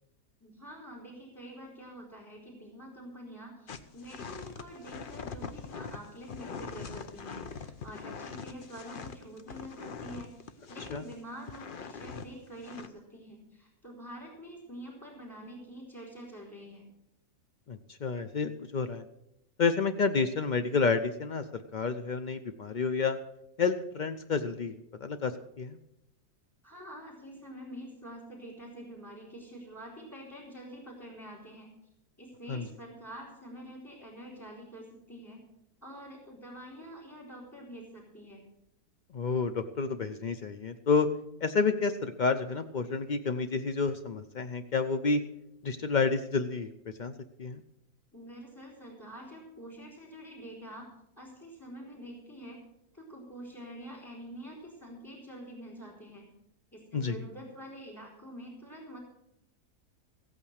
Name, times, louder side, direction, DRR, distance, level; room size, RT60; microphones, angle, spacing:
voice 1, 0.4-16.8 26.6-31.7 32.2-35.4 35.8-38.4 48.1-50.9 51.2-52.6 52.9-56.3 56.7-59.0, equal, 10° left, -3 dB, 3.4 m, -46 dB
sound 1, 3.7-11.1 11.5-12.3 12.6-12.9, left 5 dB, 50° left, 0.7 m, -42 dB
voice 2, 17.7-19.0 19.6-23.2 23.6-24.7 25.0-25.8 32.5-32.6 39.1-41.1 41.4-45.2 45.6-46.7 47.0-47.1 47.4-47.6 56.9-57.2, left 4 dB, 85° left, 9 dB, 0.4 m, -29 dB
15.5 x 8.8 x 6.4 m, 0.81 s
omnidirectional pair, 1.7 m